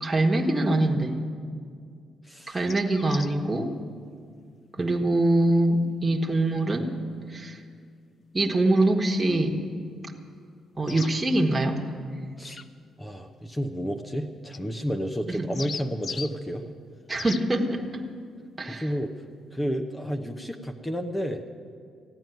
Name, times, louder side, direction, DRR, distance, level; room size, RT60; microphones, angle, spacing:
voice 1, 0.0-1.2 2.5-3.7 4.8-6.9 7.3-7.6 8.3-9.6 10.8-11.8 15.3-15.4 17.1-18.0 18.6-18.8, right 2 dB, 15° right, 0 dB, 1.5 m, -24 dB
voice 2, 2.2-2.6 4.8-4.9 12.4-12.6 13.0-16.7 18.7-19.1 19.5-21.4, equal, 15° left, 5 dB, 0.9 m, -31 dB
sound 1, 2.5-3.4 6.5-6.6 10.9-11.1 12.4-12.7 14.5-14.6 15.3-16.3 17.2-17.4, left 5 dB, 45° left, 0.6 m, -38 dB
15.5 x 9.0 x 9.3 m, 2.2 s
cardioid pair, 90°, 0 cm